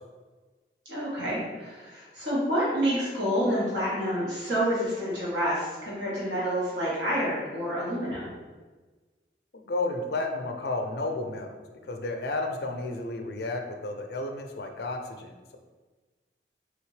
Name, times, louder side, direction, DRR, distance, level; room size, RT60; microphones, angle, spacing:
voice 1, 0.9-8.3, equal, 90° right, -8 dB, 1.3 m, -28 dB
voice 2, 9.5-15.6, left 2 dB, 65° left, 4 dB, 0.5 m, -32 dB
3.9 x 3.4 x 3.2 m, 1.3 s
head